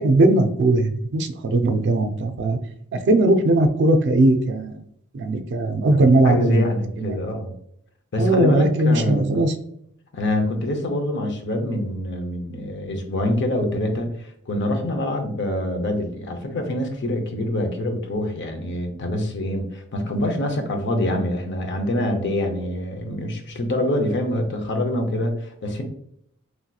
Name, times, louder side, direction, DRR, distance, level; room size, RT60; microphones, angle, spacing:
voice 1, 0.0-2.6 2.9-4.8 5.1-6.7 7.0-7.2 8.2-9.5, right 2 dB, 55° right, 8 dB, 0.4 m, -19 dB
voice 2, 5.7-7.5 8.1-9.4 10.1-25.8, left 1 dB, 55° left, 5 dB, 0.6 m, -25 dB
3.1 x 2.8 x 2.2 m, 0.70 s
head